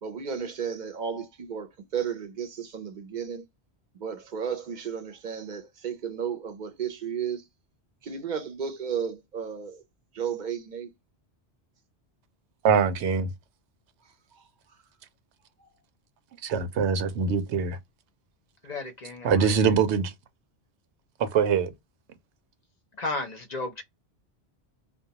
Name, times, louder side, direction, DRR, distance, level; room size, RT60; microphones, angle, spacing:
voice 1, 0.0-3.4 3.9-7.5 8.0-9.8 10.1-10.9 14.3-14.4, right 7 dB, 55° right, 0.6 m, -33 dB
voice 2, 12.6-13.3 16.4-17.8 19.2-20.1 21.2-21.7, right 6 dB, 90° right, 0.9 m, -23 dB
voice 3, 18.6-19.7 23.0-23.8, left 2 dB, 50° left, 0.6 m, -34 dB
2.2 x 2.2 x 2.7 m
omnidirectional pair, 1.1 m